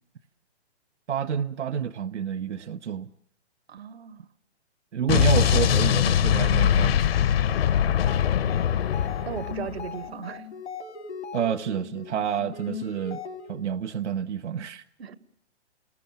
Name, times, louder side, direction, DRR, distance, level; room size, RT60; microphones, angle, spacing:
voice 1, 1.1-3.1 4.9-7.1 11.3-13.2 13.5-14.8, right 8 dB, 85° right, 0.9 m, -29 dB
voice 2, 3.7-4.2 9.2-10.5 15.0-15.2, right 8 dB, 65° right, 1.5 m, -36 dB
Explosion, 5.1-9.9, left 10 dB, 60° left, 1.5 m, -22 dB
sound 1, 7.9-13.7, left 6 dB, 75° left, 3.0 m, -39 dB
29.5 x 20.5 x 7.1 m
hypercardioid pair, 145°, 34 cm